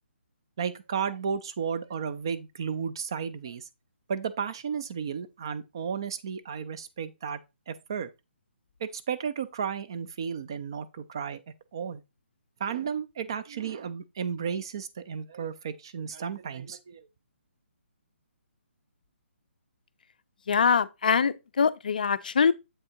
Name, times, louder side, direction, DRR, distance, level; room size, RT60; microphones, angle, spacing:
voice 1, 0.6-3.7 4.1-7.4 7.7-8.1 8.8-11.4 11.7-12.0 12.6-17.0, right 7 dB, 20° right, 0.3 m, -33 dB
voice 2, 20.5-22.5, left 6 dB, 40° left, 0.5 m, -23 dB
7.8 x 3.6 x 4.3 m
hypercardioid pair, 175°, 7 cm